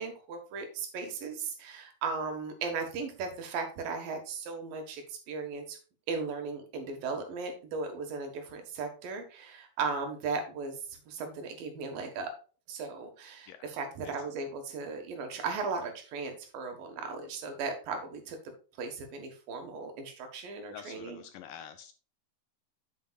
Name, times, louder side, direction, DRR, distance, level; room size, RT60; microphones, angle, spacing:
voice 1, 0.0-5.8 6.1-12.3 12.7-18.4 18.8-21.2, right 4 dB, 70° right, 5 dB, 3.0 m, -37 dB
voice 2, 20.7-21.9, left 9 dB, 80° left, 9 dB, 2.1 m, -47 dB
8.5 x 8.0 x 2.4 m, 0.37 s
omnidirectional pair, 4.3 m